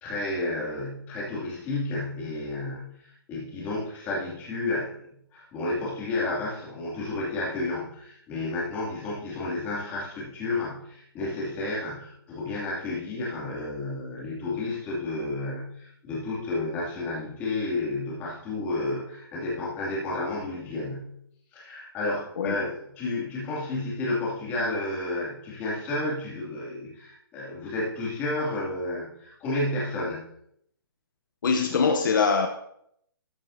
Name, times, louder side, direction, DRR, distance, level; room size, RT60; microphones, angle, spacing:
voice 1, 0.0-5.0 5.3-21.2 21.5-30.2, left 2 dB, 15° left, -6 dB, 2.5 m, -31 dB
voice 2, 31.4-32.5, left 5 dB, 55° left, 5 dB, 0.9 m, -23 dB
13.5 x 7.5 x 2.7 m, 0.71 s
hypercardioid pair, 170°, 13 cm